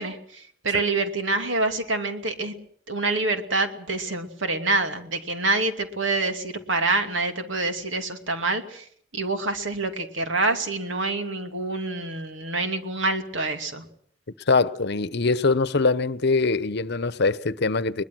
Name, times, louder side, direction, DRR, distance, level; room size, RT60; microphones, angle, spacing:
voice 1, 0.0-2.6 2.9-8.9 9.1-13.8, right 3 dB, 90° right, 2.7 m, -26 dB
voice 2, 14.5-18.0, left 3 dB, 60° left, 0.9 m, -23 dB
22.0 x 20.5 x 6.2 m
head